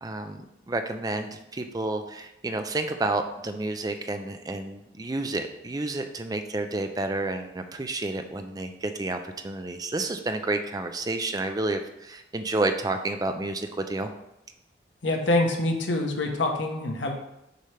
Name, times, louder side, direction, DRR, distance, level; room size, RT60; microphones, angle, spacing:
voice 1, 0.0-14.1, right 2 dB, 20° right, 7 dB, 0.5 m, -30 dB
voice 2, 15.0-17.1, left 2 dB, 80° left, 2 dB, 1.1 m, -25 dB
6.6 x 3.4 x 5.6 m, 0.85 s
head